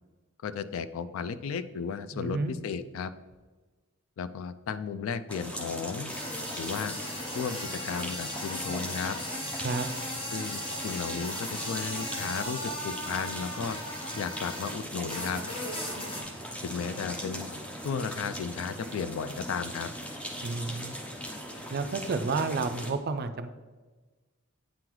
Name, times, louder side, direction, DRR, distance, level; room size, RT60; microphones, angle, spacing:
voice 1, 0.4-3.1 4.2-6.1 6.6-6.9 7.3-7.6 7.8-9.2 10.3-13.8 14.1-15.4 16.6-17.5 17.8-19.9, left 6 dB, 70° left, 13 dB, 0.3 m, -34 dB
voice 2, 2.1-2.5 9.6-9.9 20.4-20.9 21.7-23.6, right 4 dB, 45° right, 9 dB, 0.4 m, -31 dB
sound 1, 5.3-22.9, equal, 5° left, 0.6 m, -40 dB
sound 2, 6.1-14.8 15.1-16.2, left 1 dB, 25° left, 1.0 m, -37 dB
8.6 x 3.8 x 3.0 m, 1.3 s
head